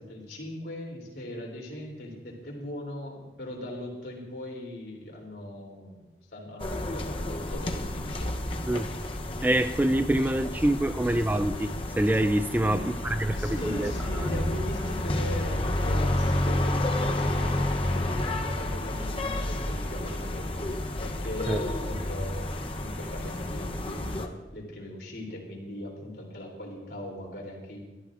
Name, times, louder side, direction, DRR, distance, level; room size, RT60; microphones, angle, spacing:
voice 1, 0.0-6.0 6.3-8.4 12.6-13.0 13.4-20.7 21.0-27.8, left 1 dB, 75° left, 0 dB, 3.2 m, -39 dB
sound 1, 6.6-24.3, left 1 dB, 30° left, 0.8 m, -30 dB
voice 2, 9.4-11.7 12.0-13.9 21.5-21.6, right 1 dB, 10° right, 10 dB, 0.3 m, -25 dB
22.5 x 13.0 x 2.5 m, 1.2 s
head